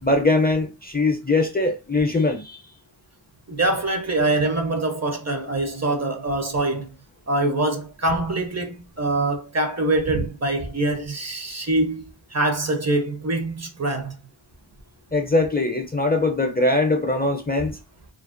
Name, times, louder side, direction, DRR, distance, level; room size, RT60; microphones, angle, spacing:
voice 1, 0.0-2.6 15.1-17.8, left 2 dB, 20° left, 0.4 m, -21 dB
voice 2, 3.5-6.9 7.3-14.1, right 2 dB, 35° right, 0.5 m, -24 dB
2.5 x 2.0 x 2.4 m
wide cardioid pair, 45°, 47 cm